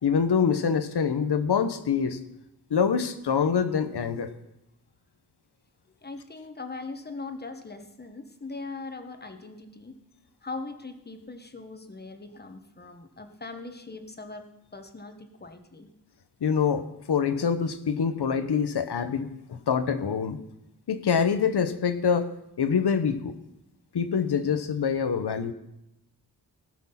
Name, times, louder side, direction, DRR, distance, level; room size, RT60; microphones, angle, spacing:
voice 1, 0.0-2.2 2.7-4.3 16.4-20.4 20.9-22.3 22.6-23.3 23.9-25.5, left 6 dB, 85° left, 10 dB, 1.1 m, -25 dB
voice 2, 6.0-9.9 10.4-15.9, left 3 dB, 25° left, 6 dB, 1.4 m, -40 dB
18.5 x 6.1 x 5.8 m, 0.86 s
wide cardioid pair, 100°, 39 cm